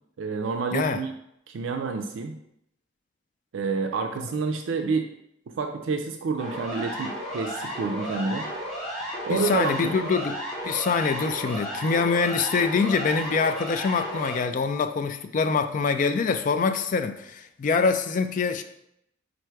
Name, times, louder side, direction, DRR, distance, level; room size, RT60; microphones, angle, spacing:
voice 1, 0.2-1.1 1.5-2.4 3.5-5.1 5.5-8.5 9.3-9.8 10.0-10.1, right 4 dB, 85° right, 5 dB, 0.4 m, -28 dB
Siren, 6.4-14.4, equal, 5° left, 1.1 m, -33 dB
voice 2, 9.3-18.6, left 5 dB, 40° left, 8 dB, 0.3 m, -25 dB
4.5 x 2.5 x 4.5 m, 0.77 s
head